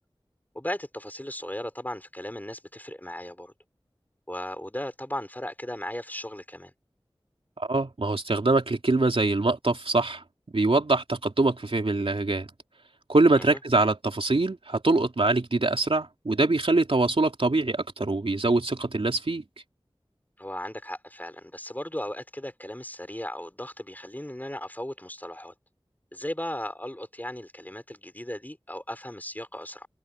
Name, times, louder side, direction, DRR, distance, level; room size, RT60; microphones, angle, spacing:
voice 1, 0.5-3.5 4.3-6.7 13.4-13.6 20.4-25.5 26.1-29.9, left 1 dB, 20° left, 3.7 m, -36 dB
voice 2, 7.6-10.2 10.5-12.5 13.1-19.4, right 2 dB, 75° right, 3.2 m, -24 dB
open air
wide cardioid pair, 45°, 10 cm